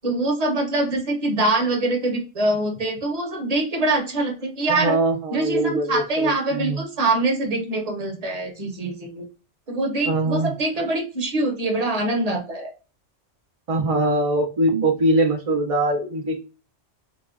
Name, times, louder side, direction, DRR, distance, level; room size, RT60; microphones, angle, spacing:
voice 1, 0.0-5.0 5.3-9.3 9.7-12.7, right 2 dB, 40° right, 3 dB, 0.8 m, -24 dB
voice 2, 4.7-6.8 10.1-10.5 13.7-16.4, right 2 dB, 55° right, 1 dB, 0.4 m, -22 dB
4.1 x 2.1 x 2.4 m, 0.32 s
omnidirectional pair, 1.2 m